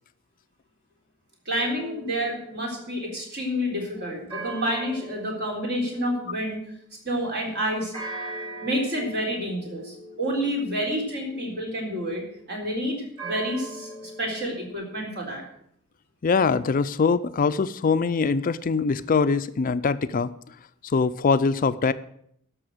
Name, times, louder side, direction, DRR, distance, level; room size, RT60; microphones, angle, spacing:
voice 1, 1.5-6.6 7.0-7.9 8.6-15.4, equal, 55° right, 0 dB, 3.9 m, -29 dB
sound 1, 1.6-3.2 4.3-6.7 7.9-12.8 13.2-14.7, right 2 dB, 25° right, 3.3 m, -41 dB
voice 2, 16.2-20.3 20.9-21.9, left 4 dB, 40° left, 13 dB, 0.4 m, -23 dB
12.5 x 6.2 x 7.8 m, 0.68 s
head